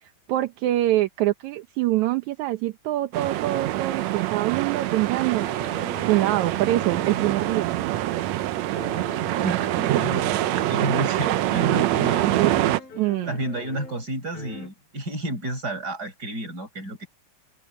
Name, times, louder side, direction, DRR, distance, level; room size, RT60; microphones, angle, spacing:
voice 1, 0.0-5.8 6.0-7.8 12.0-12.5 13.0-13.4, right 15 dB, 70° right, 1.9 m, -25 dB
sound 1, 3.1-12.8, right 15 dB, 90° right, 1.5 m, -25 dB
sound 2, 4.7-8.3 8.7-14.1 14.3-14.7, left 3 dB, 85° left, 7.8 m, -42 dB
voice 2, 9.4-10.4 10.7-12.8 13.3-17.1, right 1 dB, 25° right, 7.8 m, -31 dB
open air
omnidirectional pair, 4.1 m